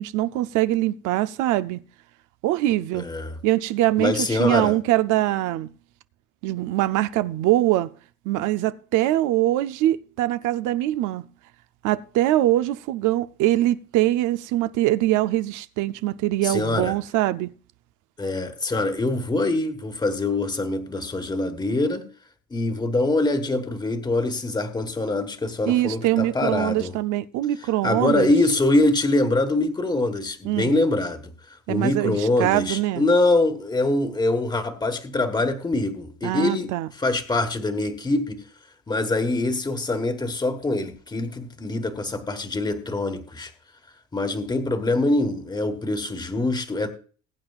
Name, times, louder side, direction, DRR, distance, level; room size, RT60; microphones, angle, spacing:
voice 1, 0.0-1.8 2.4-3.1 3.4-5.7 6.4-7.9 8.3-11.2 11.8-17.5 25.7-28.3 30.4-30.8 31.7-33.0 36.2-36.9, right 15 dB, 90° right, 0.6 m, -23 dB
voice 2, 2.9-3.4 4.0-4.8 16.4-16.9 18.2-22.0 22.5-26.9 27.8-31.3 31.7-36.7 37.0-38.4 38.9-43.5 44.1-46.9, left 2 dB, 15° left, 1.3 m, -24 dB
21.0 x 8.8 x 2.4 m
cardioid pair, 140°, 29 cm